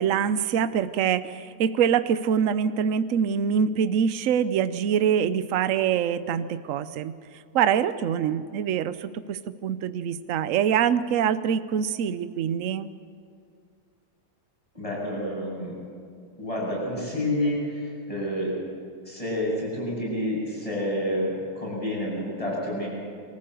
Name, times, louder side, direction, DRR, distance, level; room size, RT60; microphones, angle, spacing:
voice 1, 0.0-7.1 7.5-12.9, right 8 dB, 60° right, 13 dB, 1.0 m, -24 dB
voice 2, 14.7-15.7 16.4-18.6 19.0-22.9, left 1 dB, 20° left, -4 dB, 8.1 m, -29 dB
24.0 x 15.0 x 7.8 m, 2.3 s
omnidirectional pair, 1.8 m